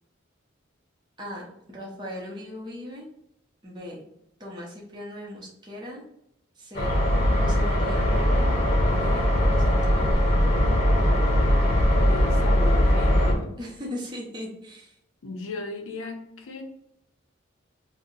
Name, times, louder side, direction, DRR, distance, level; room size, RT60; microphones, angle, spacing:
voice 1, 1.2-3.1 3.6-4.0 4.4-6.0 6.6-7.0 7.4-8.5 8.9-10.5 13.6-14.9, left 1 dB, 20° right, -4 dB, 0.6 m, -38 dB
sound 1, 6.7-13.3, equal, 50° left, 0.9 m, -21 dB
voice 2, 12.0-13.6 15.2-16.6, left 3 dB, 80° left, 5 dB, 0.5 m, -36 dB
2.6 x 2.0 x 3.7 m, 0.80 s
head